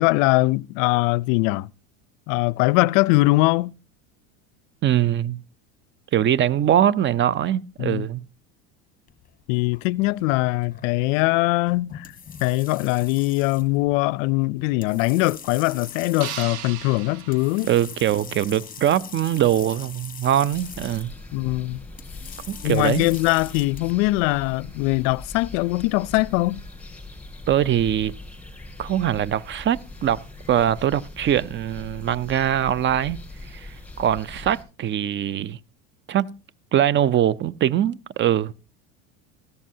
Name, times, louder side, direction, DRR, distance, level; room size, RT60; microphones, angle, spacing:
voice 1, 0.0-1.7 2.3-3.7 7.8-8.1 9.5-12.1 12.4-17.7 21.3-21.8 22.6-26.6, left 21 dB, 70° left, 0.5 m, -21 dB
voice 2, 4.8-5.4 6.1-8.3 17.6-21.1 22.5-23.1 27.5-28.1 28.8-30.2 30.5-33.2 33.5-33.7 34.0-35.6 36.1-36.3 36.7-38.5, right 11 dB, 30° right, 0.5 m, -22 dB
sound 1, 9.1-23.9, left 7 dB, 20° left, 1.3 m, -43 dB
sound 2, 16.2-18.5, right 10 dB, 70° right, 1.4 m, -37 dB
sound 3, 20.5-34.6, left 2 dB, 5° left, 6.9 m, -41 dB
15.5 x 13.5 x 2.7 m
supercardioid pair, 100°, 41 cm